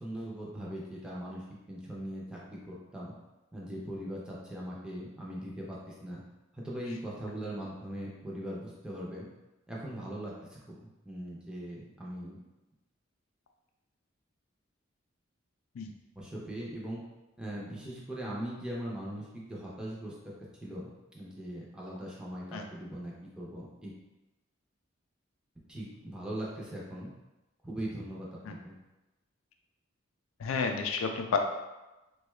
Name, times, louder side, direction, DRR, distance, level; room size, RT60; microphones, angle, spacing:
voice 1, 0.0-3.1 3.5-6.2 6.5-9.3 9.7-12.4 16.2-17.0 17.4-20.2 20.6-23.9 25.7-27.1 27.6-28.8, right 1 dB, 5° right, -5 dB, 0.5 m, -40 dB
voice 2, 30.4-31.4, left 5 dB, 85° left, 4 dB, 0.4 m, -31 dB
3.8 x 2.3 x 3.1 m, 1.0 s
head